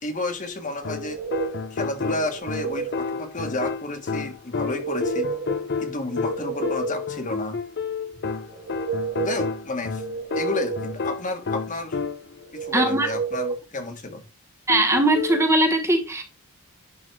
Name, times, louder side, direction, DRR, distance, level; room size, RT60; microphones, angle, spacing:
voice 1, 0.0-1.2 1.7-5.3 5.8-7.6 9.2-10.0 10.3-12.0 12.5-14.2, left 2 dB, 35° left, 1.5 m, -31 dB
sound 1, 0.8-12.5 14.7-15.5, left 5 dB, 50° left, 0.6 m, -30 dB
sound 2, 0.8-1.7 2.2-3.0 4.6-5.6 6.0-7.1 8.5-9.5 10.0-11.0 12.5-13.6, right 5 dB, 40° right, 0.9 m, -31 dB
voice 2, 12.7-13.1 14.7-16.2, right 1 dB, 10° right, 1.2 m, -20 dB
11.0 x 4.0 x 4.6 m
head